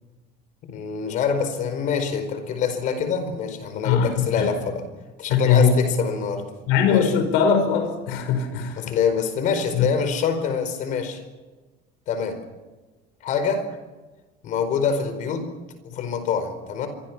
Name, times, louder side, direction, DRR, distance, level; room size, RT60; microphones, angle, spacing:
voice 1, 0.6-4.9 5.2-6.5 6.9-7.1 8.8-11.2 12.1-12.4 13.2-13.7 14.4-15.5 15.9-16.9, left 6 dB, 45° left, 9 dB, 4.8 m, -25 dB
voice 2, 3.8-4.5 5.3-5.7 6.7-8.9 9.7-9.9, left 7 dB, 80° left, 7 dB, 5.6 m, -20 dB
26.5 x 24.0 x 6.2 m, 1.2 s
cardioid pair, 175°, 19 cm